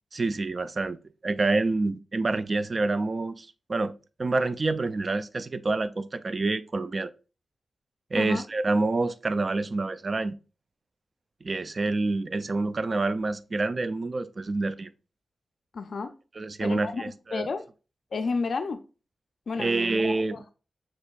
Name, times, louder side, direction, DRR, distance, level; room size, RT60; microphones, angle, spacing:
voice 1, 0.1-1.0 1.2-3.9 4.2-7.1 8.1-10.4 11.4-14.9 16.4-17.5 19.6-20.4, right 3 dB, 45° right, 0.3 m, -27 dB
voice 2, 15.7-16.1 16.6-17.6 18.1-18.8 19.5-20.5, left 4 dB, 70° left, 0.3 m, -32 dB
6.3 x 2.9 x 2.4 m
cardioid pair, 75°, 0 cm